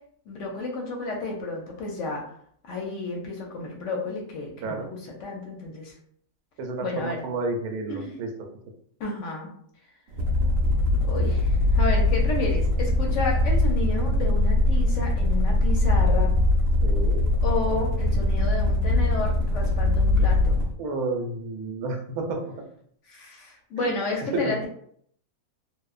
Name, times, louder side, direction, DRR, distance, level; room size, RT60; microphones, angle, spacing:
voice 1, 0.3-2.2 2.6-5.9 6.8-7.2 7.9-8.1 9.0-9.5 11.0-16.4 17.4-20.6 23.1-24.7, left 3 dB, 65° left, 0 dB, 0.8 m, -31 dB
voice 2, 6.6-8.3 16.8-17.3 20.8-22.4 23.8-23.9 24.3-24.5, right 2 dB, 90° right, 3 dB, 1.1 m, -30 dB
sound 1, 10.1-20.7, left 2 dB, 70° right, 0.9 m, -22 dB
3.0 x 2.0 x 2.3 m, 0.65 s
omnidirectional pair, 1.5 m